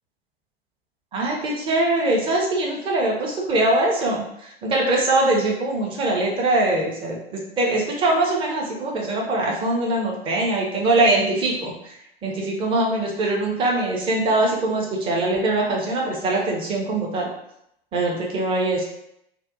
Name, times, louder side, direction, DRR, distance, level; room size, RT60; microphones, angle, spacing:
voice 1, 1.1-17.3 17.9-18.8, right 2 dB, 15° right, -1 dB, 0.5 m, -22 dB
2.5 x 2.0 x 2.5 m, 0.77 s
figure-of-eight pair, 90°, 32 cm